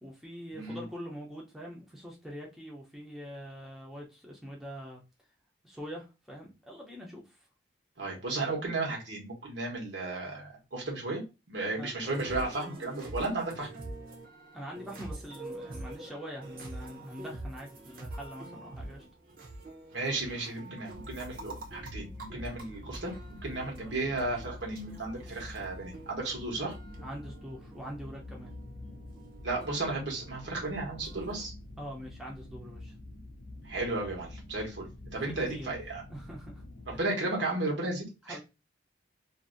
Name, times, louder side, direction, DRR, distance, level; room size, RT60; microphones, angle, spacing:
voice 1, 0.0-5.0 5.6-7.4 11.8-11.9 14.5-19.0 27.0-28.5 31.8-32.9 35.2-35.8 36.1-36.6 36.9-37.0 38.2-38.4, equal, ahead, -3 dB, 0.7 m, -44 dB
voice 2, 0.5-0.8 8.0-11.2 11.5-13.7 19.9-26.7 29.4-31.5 33.6-34.9 35.1-36.0 36.9-38.4, right 2 dB, 75° right, -1 dB, 1.1 m, -34 dB
sound 1, 12.0-31.5, right 1 dB, 50° right, 0.8 m, -46 dB
sound 2, 20.9-37.0, left 1 dB, 65° left, 0.6 m, -47 dB
2.6 x 2.6 x 2.5 m, 0.27 s
head